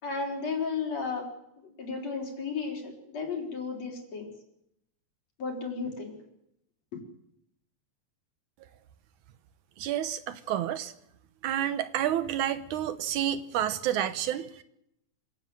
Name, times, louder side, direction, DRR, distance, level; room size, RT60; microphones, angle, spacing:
voice 1, 0.0-1.3 1.6-4.3 5.4-6.2 6.9-7.0, left 4 dB, 60° left, 1 dB, 5.3 m, -34 dB
voice 2, 9.8-10.9 11.4-14.6, right 11 dB, 80° right, 12 dB, 2.5 m, -29 dB
26.0 x 17.5 x 7.7 m, 0.80 s
omnidirectional pair, 3.4 m